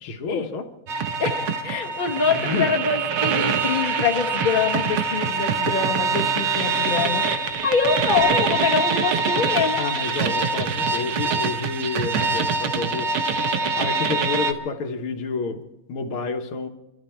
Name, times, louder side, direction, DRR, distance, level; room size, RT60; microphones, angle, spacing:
voice 1, 0.0-0.6 2.3-2.7 9.8-13.2 13.8-15.6 15.9-16.7, left 4 dB, 80° left, 5 dB, 2.0 m, -29 dB
sound 1, 0.9-14.5, right 4 dB, 80° right, 1.9 m, -24 dB
voice 2, 1.2-9.8, left 6 dB, 30° left, 2 dB, 1.2 m, -25 dB
25.5 x 13.0 x 4.4 m, 0.96 s
omnidirectional pair, 2.3 m